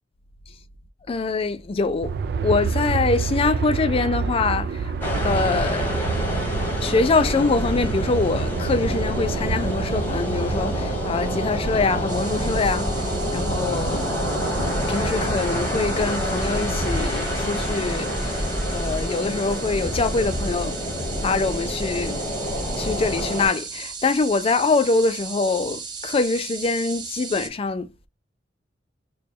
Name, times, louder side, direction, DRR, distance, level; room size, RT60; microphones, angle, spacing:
voice 1, 1.1-2.1 2.4-4.9 5.2-6.0 6.8-12.9 13.3-14.1 14.9-20.8 21.2-22.2 22.8-27.9, left 4 dB, 30° left, 0.4 m, -24 dB
Aircraft, 2.0-18.2, right 5 dB, 60° right, 0.3 m, -29 dB
sound 1, 5.0-23.5, equal, 10° left, 1.1 m, -27 dB
sound 2, 12.1-27.5, right 5 dB, 25° right, 0.6 m, -37 dB
3.0 x 2.2 x 4.3 m
head